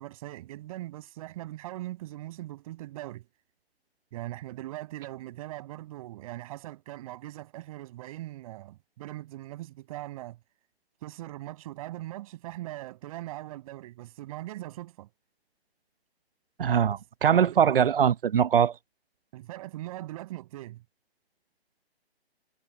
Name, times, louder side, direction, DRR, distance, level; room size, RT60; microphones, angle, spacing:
voice 1, 0.0-3.2 4.1-10.4 11.0-15.1 19.3-20.8, right 16 dB, 35° right, 6.8 m, -40 dB
voice 2, 16.6-18.7, right 8 dB, 60° right, 1.0 m, -22 dB
hypercardioid pair, 150°, 32 cm